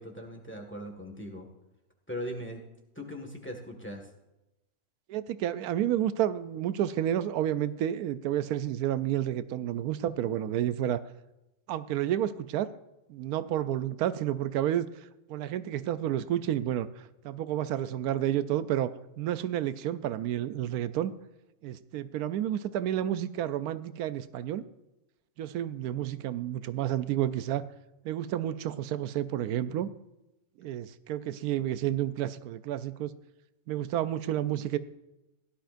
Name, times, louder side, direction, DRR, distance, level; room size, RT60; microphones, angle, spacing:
voice 1, 0.0-1.5 2.1-2.7 2.9-4.1, equal, 10° left, 2 dB, 1.6 m, -39 dB
voice 2, 5.1-11.0 11.7-12.7 13.1-14.8 15.3-16.9 17.2-18.9 19.2-21.1 21.6-24.6 25.4-27.6 28.0-29.9 30.6-33.1 33.7-34.8, right 11 dB, 90° right, 14 dB, 1.1 m, -30 dB
16.5 x 11.5 x 2.6 m, 0.95 s
omnidirectional pair, 1.6 m